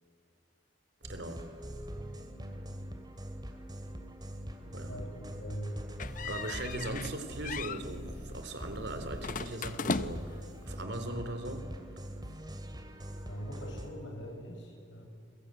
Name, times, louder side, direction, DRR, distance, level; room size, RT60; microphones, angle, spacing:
sound 1, 1.0-13.9, equal, 25° right, 2.5 m, -43 dB
voice 1, 1.1-1.4 4.7-5.0 6.2-11.7, right 2 dB, 65° right, 8 dB, 3.4 m, -39 dB
voice 2, 4.9-5.8 13.3-15.1, equal, 80° left, 3 dB, 6.5 m, -41 dB
sound 2, 6.0-7.2 7.4-7.8 9.2-10.4, left 4 dB, 45° left, 0.8 m, -36 dB
28.5 x 22.5 x 9.0 m, 2.4 s
head